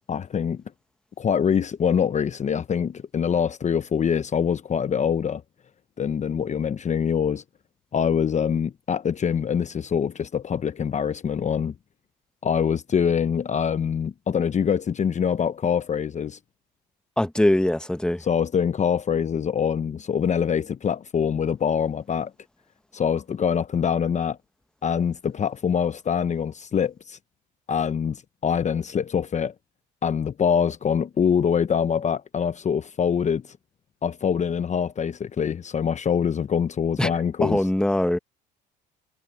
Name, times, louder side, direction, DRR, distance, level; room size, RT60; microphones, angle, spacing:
voice 1, 0.1-0.6 1.2-5.4 6.0-7.4 7.9-11.7 12.4-16.4 18.2-22.3 22.9-24.4 24.8-27.2 27.7-29.5 30.0-33.6 34.0-37.6, left 7 dB, 35° left, 1.0 m, -24 dB
voice 2, 17.2-18.2 37.0-37.1 37.4-38.2, left 1 dB, 5° left, 1.4 m, -22 dB
hypercardioid pair, 75°, 21 cm